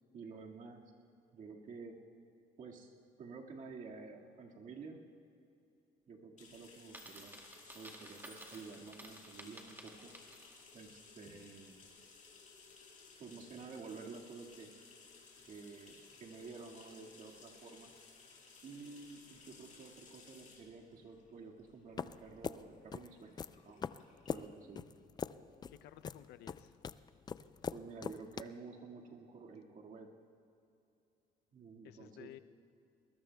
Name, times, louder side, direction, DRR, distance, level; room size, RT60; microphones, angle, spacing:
voice 1, 0.1-0.8 1.3-2.0 2.6-2.9 3.2-5.0 6.1-7.4 7.7-10.1 10.7-11.9 13.2-14.7 15.5-17.9 18.6-23.8 24.3-24.8 27.7-30.1 31.5-32.3, right 4 dB, 50° right, 0 dB, 1.9 m, -51 dB
sound 1, 6.4-25.8, left 4 dB, 50° left, 3.7 m, -59 dB
Coin (dropping), 6.8-10.7, right 1 dB, 10° right, 2.1 m, -54 dB
sound 2, 22.0-28.4, left 6 dB, 25° left, 0.3 m, -42 dB
voice 2, 25.7-26.7 31.8-32.4, left 13 dB, 80° left, 14 dB, 0.5 m, -54 dB
22.0 x 20.5 x 2.3 m, 2.7 s
cardioid pair, 110°, 17 cm